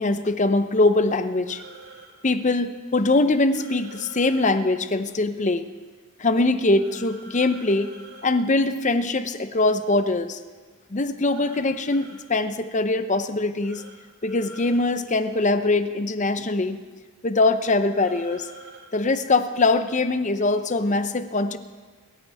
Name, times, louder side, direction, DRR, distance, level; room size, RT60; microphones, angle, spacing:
voice 1, 0.0-1.6 2.2-5.7 6.2-7.9 8.2-10.4 10.9-13.8 14.2-16.8 17.2-18.5 18.9-21.6, left 2 dB, 35° left, 11 dB, 0.7 m, -22 dB
sound 1, 1.5-2.1 3.5-4.5 6.8-8.3 11.3-12.2 13.6-13.9 14.2-14.8 17.9-18.8, right 2 dB, 70° right, 4.4 m, -45 dB
28.0 x 13.5 x 3.5 m, 1.4 s
head